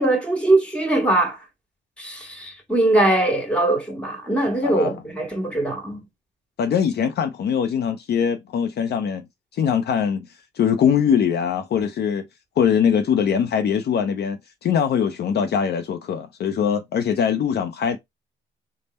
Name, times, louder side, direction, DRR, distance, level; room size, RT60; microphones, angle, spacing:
voice 1, 0.0-1.4 2.0-6.0, right 2 dB, 5° left, 1.6 m, -21 dB
voice 2, 4.6-4.9 6.6-9.3 9.5-10.3 10.6-12.3 12.6-18.0, left 7 dB, 55° left, 0.5 m, -22 dB
3.5 x 2.1 x 4.0 m
cardioid pair, 90°, 20 cm